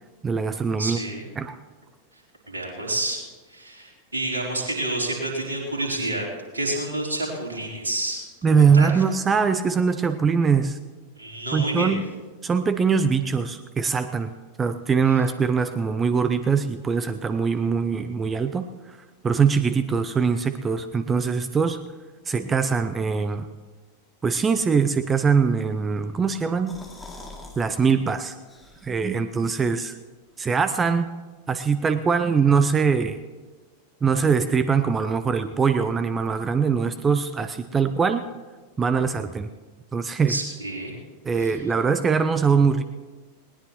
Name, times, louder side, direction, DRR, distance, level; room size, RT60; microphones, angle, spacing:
voice 1, 0.2-1.0 1.4-1.6 8.4-10.8 11.5-12.1 12.4-14.3 14.6-19.0 19.2-21.8 22.2-23.5 24.2-26.8 27.6-28.4 28.8-29.9 30.4-31.1 31.5-33.2 34.0-38.2 38.8-39.5 39.9-40.4 41.2-42.8, right 5 dB, 20° right, 10 dB, 0.6 m, -22 dB
voice 2, 0.8-1.3 2.5-3.2 3.5-6.3 6.5-8.2 8.7-8.9 11.2-12.0 40.3-40.9 41.4-41.5, right 1 dB, 75° right, -2 dB, 3.9 m, -28 dB
sound 1, 26.4-27.6 28.0-28.1 28.5-29.1, left 2 dB, 5° left, 2.6 m, -43 dB
20.0 x 19.0 x 3.1 m, 1.3 s
figure-of-eight pair, 90°, 0 cm